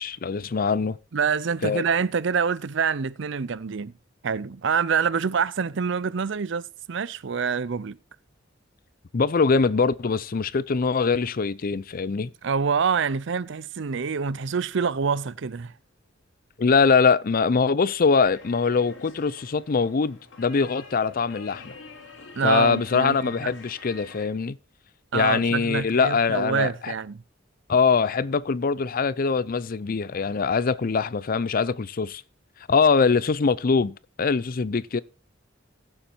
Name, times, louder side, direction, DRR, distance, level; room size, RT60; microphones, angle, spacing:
voice 1, 0.0-1.0 1.6-1.8 9.1-12.3 16.6-21.7 22.4-24.6 25.1-26.9 27.7-32.2 32.7-35.0, left 5 dB, 45° left, 0.5 m, -23 dB
voice 2, 1.1-3.9 4.2-8.0 12.4-15.7 22.4-23.2 23.4-23.5 25.1-27.2, right 6 dB, 65° right, 0.5 m, -26 dB
sound 1, 18.2-24.3, left 3 dB, 70° left, 2.7 m, -46 dB
16.0 x 7.1 x 4.4 m
head